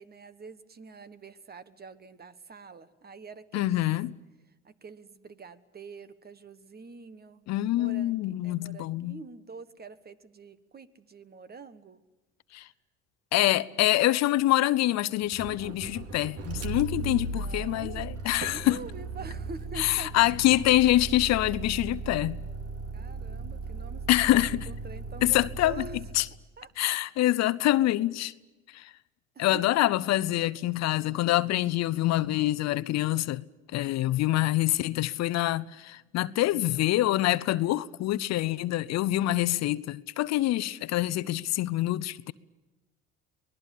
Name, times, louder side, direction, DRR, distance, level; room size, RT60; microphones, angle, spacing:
voice 1, 0.0-3.8 4.6-7.4 7.7-12.0 16.9-18.1 18.3-20.1 22.9-26.0 26.6-27.0 29.3-29.9, right 4 dB, 30° right, 1.5 m, -46 dB
voice 2, 3.5-4.2 7.5-9.2 12.5-12.7 13.3-18.8 19.8-22.4 24.1-24.7 25.2-25.8 26.1-26.3 26.8-28.3 28.7-28.9 29.4-33.5 33.7-42.3, left 15 dB, 65° left, 0.7 m, -25 dB
Motor vehicle (road), 15.2-26.4, right 3 dB, 55° right, 2.4 m, -37 dB
25.0 x 19.5 x 8.4 m
hypercardioid pair, 70°, 29 cm